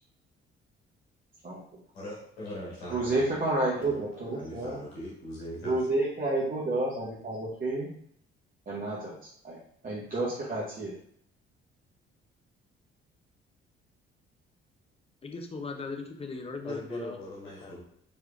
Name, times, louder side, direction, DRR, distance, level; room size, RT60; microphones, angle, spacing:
voice 1, 1.9-3.5 3.8-5.8 16.6-17.8, left 1 dB, 80° left, -6 dB, 1.3 m, -41 dB
voice 2, 2.9-4.8 5.6-7.9 8.7-9.1 9.4-9.6 9.8-10.9, right 2 dB, 25° right, -6 dB, 1.0 m, -30 dB
voice 3, 15.2-17.2 17.6-17.8, left 4 dB, 20° left, 5 dB, 0.6 m, -38 dB
4.6 x 3.1 x 2.4 m, 0.68 s
figure-of-eight pair, 45°, 31 cm